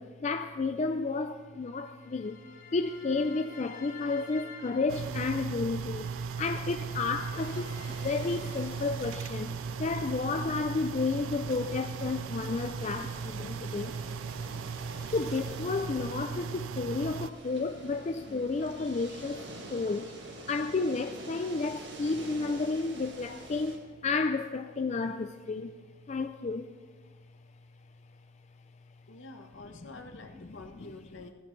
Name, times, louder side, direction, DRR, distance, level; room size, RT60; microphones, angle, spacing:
voice 1, 0.0-2.4 2.7-14.0 15.1-19.4 19.7-20.2 20.5-25.8 26.1-26.7 30.8-30.9, left 3 dB, 35° left, 0.4 m, -32 dB
sound 1, 1.1-9.4 9.9-13.8 14.2-15.4, left 3 dB, 90° left, 2.4 m, -52 dB
sound 2, 4.9-17.3, right 6 dB, 80° right, 0.3 m, -37 dB
sound 3, 7.4-23.8, right 2 dB, 60° right, 1.9 m, -47 dB
voice 2, 29.1-31.3, left 2 dB, 70° left, 1.2 m, -47 dB
15.5 x 15.0 x 3.2 m
head